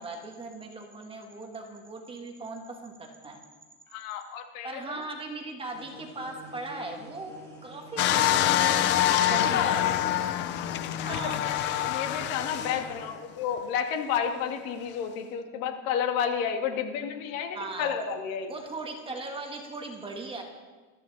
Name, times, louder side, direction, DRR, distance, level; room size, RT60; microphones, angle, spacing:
voice 1, 0.0-3.4 4.6-10.3 11.0-11.5 17.5-18.0 18.5-20.4, right 3 dB, 10° right, 2 dB, 1.5 m, -39 dB
voice 2, 3.9-5.0 9.5-9.7 11.0-18.5, left 7 dB, 70° left, 5 dB, 2.1 m, -31 dB
sound 1, 5.7-13.2, equal, 5° left, 2.7 m, -48 dB
sound 2, 8.0-13.0 13.6-13.7, left 12 dB, 30° left, 0.4 m, -26 dB
21.0 x 14.0 x 4.1 m, 1.3 s
cardioid pair, 170°, 42 cm